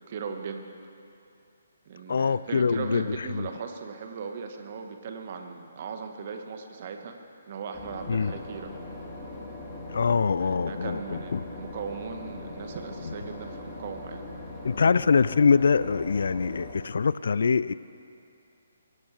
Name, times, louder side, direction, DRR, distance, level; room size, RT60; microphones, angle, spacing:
voice 1, 0.1-0.7 1.8-7.2 7.5-8.7 10.4-14.2, right 5 dB, 45° right, 5 dB, 1.5 m, -38 dB
voice 2, 2.1-3.5 8.1-8.3 9.9-11.4 13.0-13.1 14.6-17.7, left 5 dB, 60° left, 18 dB, 0.4 m, -24 dB
Boat Water vehicle / Engine, 7.7-16.7, left 2 dB, 15° left, 3.7 m, -41 dB
23.0 x 17.5 x 3.5 m, 2.6 s
figure-of-eight pair, 135°, 0 cm